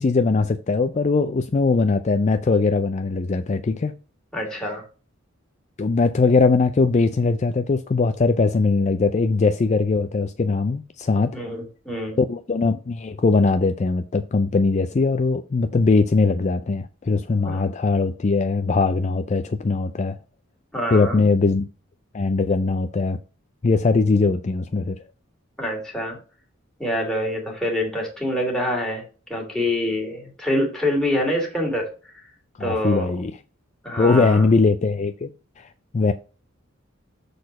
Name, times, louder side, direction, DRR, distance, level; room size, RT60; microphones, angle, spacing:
voice 1, 0.0-3.9 4.6-4.7 5.8-11.4 12.2-20.2 20.9-21.7 22.1-23.2 23.6-25.0 32.6-33.3 34.0-35.3 35.6-36.1, left 3 dB, 35° left, 0.4 m, -20 dB
voice 2, 4.3-4.8 11.3-12.2 17.4-17.6 20.7-21.2 25.6-26.2 26.8-29.0 29.3-31.9 32.6-33.1 33.8-34.5, left 1 dB, 5° left, 2.2 m, -25 dB
6.6 x 4.2 x 5.2 m
head